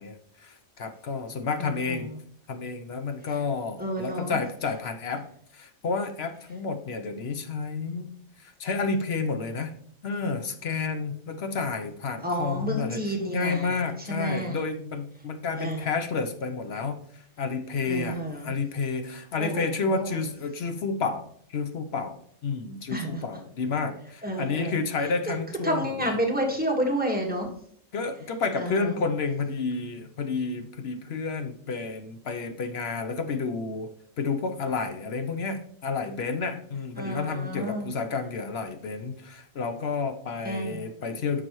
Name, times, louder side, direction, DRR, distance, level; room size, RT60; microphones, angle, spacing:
voice 1, 0.0-2.1 2.5-5.3 5.5-9.8 10.0-26.1 27.9-41.4, left 4 dB, 55° left, 8 dB, 0.9 m, -30 dB
voice 2, 1.6-2.0 3.8-4.4 12.2-13.8 14.1-14.6 15.6-15.9 17.8-18.5 19.4-20.2 22.9-23.2 24.2-24.8 25.6-27.5 28.6-29.0 37.0-37.9 40.4-40.9, equal, 5° right, -1 dB, 1.5 m, -30 dB
9.7 x 6.2 x 3.1 m, 0.64 s
omnidirectional pair, 1.4 m